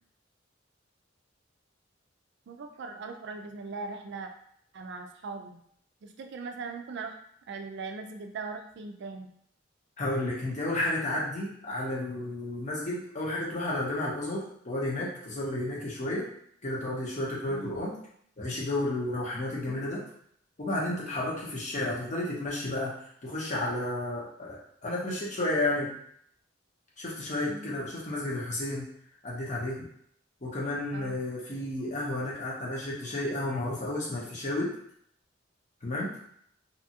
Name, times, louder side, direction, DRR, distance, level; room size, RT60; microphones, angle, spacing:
voice 1, 2.5-4.3 4.7-5.6 6.0-7.1 7.5-9.3 17.5-17.8 19.7-19.9 27.5-27.8 30.9-31.2, right 4 dB, 65° right, 6 dB, 0.4 m, -40 dB
voice 2, 10.0-16.3 16.6-18.0 18.4-20.0 20.6-22.9 23.2-25.9 27.0-28.8 29.2-29.8 30.4-34.7 35.8-36.1, left 1 dB, 40° left, -5 dB, 0.8 m, -32 dB
2.8 x 2.3 x 2.8 m, 0.66 s
head